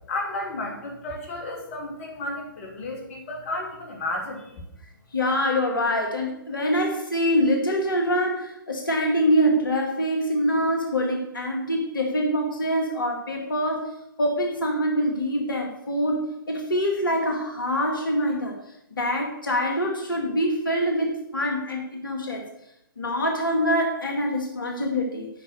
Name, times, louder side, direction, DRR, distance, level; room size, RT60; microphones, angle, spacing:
voice 1, 0.1-4.4, left 2 dB, 40° left, 0 dB, 2.7 m, -32 dB
voice 2, 5.1-16.2 16.5-18.5 18.9-22.4 23.0-25.3, equal, 70° left, 2 dB, 2.1 m, -25 dB
10.0 x 5.5 x 7.9 m, 0.82 s
figure-of-eight pair, 125°, 12 cm